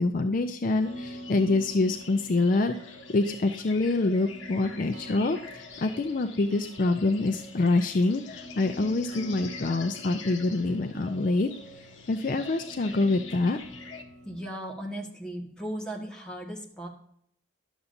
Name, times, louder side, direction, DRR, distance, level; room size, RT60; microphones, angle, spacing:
voice 1, 0.0-11.5 12.1-13.6, left 2 dB, 45° left, 8 dB, 0.4 m, -26 dB
sound 1, 0.6-14.0, left 5 dB, 65° left, 1.1 m, -46 dB
sound 2, 0.8-14.5, equal, 90° right, 1.4 m, -46 dB
voice 2, 14.2-16.9, right 1 dB, 5° left, -1 dB, 1.4 m, -37 dB
11.0 x 7.0 x 2.6 m, 0.68 s
head